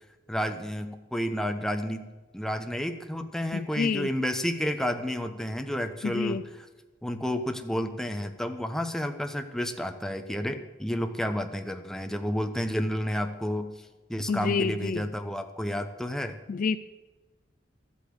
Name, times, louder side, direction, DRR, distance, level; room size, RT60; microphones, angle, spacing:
voice 1, 0.3-2.0 2.3-6.7 7.0-13.7 14.1-16.4, equal, 5° left, 6 dB, 0.9 m, -31 dB
voice 2, 3.5-4.1 6.0-6.4 14.3-15.1 16.5-16.8, left 5 dB, 45° left, 14 dB, 0.4 m, -28 dB
12.5 x 8.4 x 8.0 m, 1.2 s
head